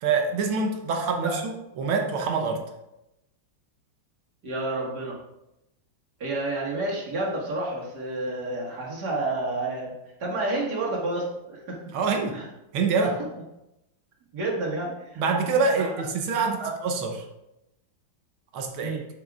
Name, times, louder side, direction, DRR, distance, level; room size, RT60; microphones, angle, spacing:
voice 1, 0.0-2.6 11.9-12.4 12.7-13.1 15.2-17.2 18.5-19.0, right 4 dB, 90° right, 3 dB, 1.8 m, -25 dB
voice 2, 4.4-5.2 6.2-9.9 10.2-11.8 12.3-12.5 13.0-13.1 14.3-15.2 15.8-15.9 16.6-16.7 18.8-19.0, right 2 dB, 55° right, -4 dB, 2.3 m, -30 dB
7.7 x 7.4 x 2.5 m, 0.90 s
omnidirectional pair, 2.2 m